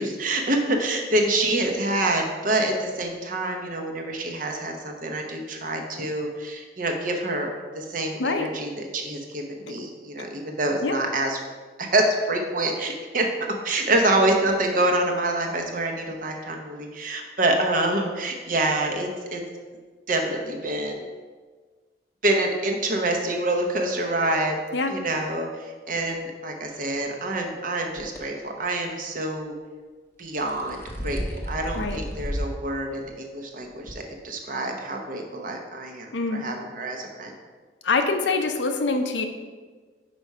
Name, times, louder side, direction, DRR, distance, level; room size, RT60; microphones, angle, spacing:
voice 1, 0.0-11.4 11.8-13.3 13.6-19.4 20.1-21.0 22.2-24.6 24.9-29.6 30.2-37.3, right 1 dB, 45° right, 2 dB, 0.9 m, -26 dB
voice 2, 8.2-8.5 10.8-11.0 24.7-24.9 31.7-32.0 36.1-36.4 37.8-39.3, left 3 dB, 75° left, 6 dB, 0.6 m, -24 dB
sound 1, 28.0-28.2 30.2-32.6 33.0-33.1 33.9-34.0, equal, 15° left, 0.7 m, -32 dB
5.2 x 4.7 x 5.4 m, 1.4 s
head